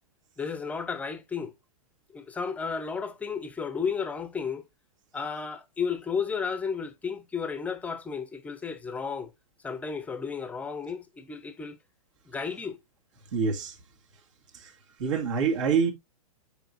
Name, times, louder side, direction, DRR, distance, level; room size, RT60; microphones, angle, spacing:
voice 1, 0.4-1.5 2.1-4.6 5.1-9.3 9.6-11.8 12.3-12.8, left 6 dB, 10° left, 0.8 m, -33 dB
voice 2, 13.2-13.8 14.1-14.2 14.5-15.9, right 6 dB, 60° right, 2.4 m, -27 dB
9.0 x 4.9 x 2.7 m
hypercardioid pair, 150°, 18 cm